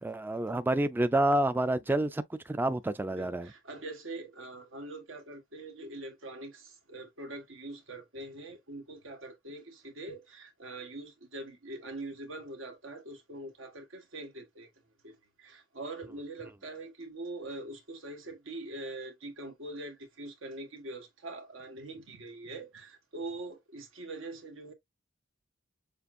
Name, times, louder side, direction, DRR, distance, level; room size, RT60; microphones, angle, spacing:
voice 1, 0.0-3.5, right 1 dB, 10° right, 0.3 m, -28 dB
voice 2, 3.1-14.7 15.0-24.7, right 2 dB, 85° right, 1.4 m, -43 dB
6.8 x 2.4 x 2.5 m
head